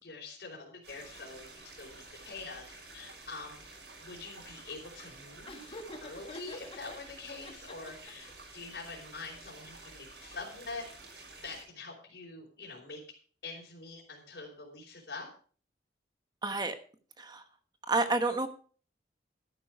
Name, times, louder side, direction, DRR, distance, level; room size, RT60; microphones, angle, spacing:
voice 1, 0.0-3.7 4.0-13.0 13.4-15.3, left 3 dB, 75° left, -5 dB, 4.3 m, -45 dB
sound 1, 0.8-11.6, right 3 dB, 85° right, 6.2 m, -51 dB
Laughter, 5.5-7.0 7.4-8.3, left 1 dB, 30° left, 1.8 m, -47 dB
voice 2, 16.4-16.8 17.2-17.4 17.9-18.5, right 3 dB, 25° right, 8 dB, 1.2 m, -29 dB
13.0 x 10.0 x 4.7 m, 0.43 s
head